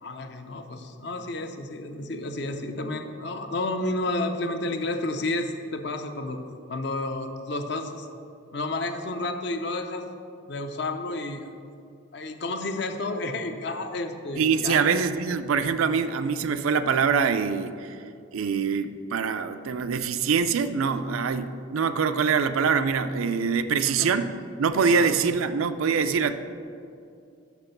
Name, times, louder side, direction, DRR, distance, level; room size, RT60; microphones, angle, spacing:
voice 1, 0.0-6.4 6.7-8.1 8.5-10.1 10.5-11.5 12.1-14.9 23.8-24.1 24.9-25.1, left 2 dB, 55° left, 6 dB, 0.6 m, -31 dB
voice 2, 14.4-18.0 18.3-24.3 24.6-26.3, right 6 dB, 85° right, 11 dB, 0.4 m, -24 dB
6.0 x 5.9 x 6.7 m, 2.4 s
head